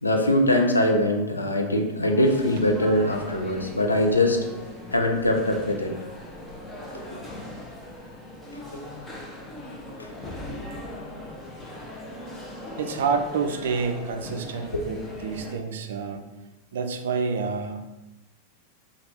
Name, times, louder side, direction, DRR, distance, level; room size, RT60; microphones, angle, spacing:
voice 1, 0.0-4.4 4.9-5.9 9.2-9.3 10.0-10.1 14.7-14.8, left 1 dB, 80° left, 2 dB, 0.5 m, -22 dB
sound 1, 1.9-15.5, left 1 dB, 15° left, 0.8 m, -39 dB
voice 2, 12.8-16.2 16.7-17.8, right 5 dB, 60° right, 6 dB, 0.4 m, -28 dB
3.3 x 2.3 x 4.4 m, 1.0 s
figure-of-eight pair, 90°, 0 cm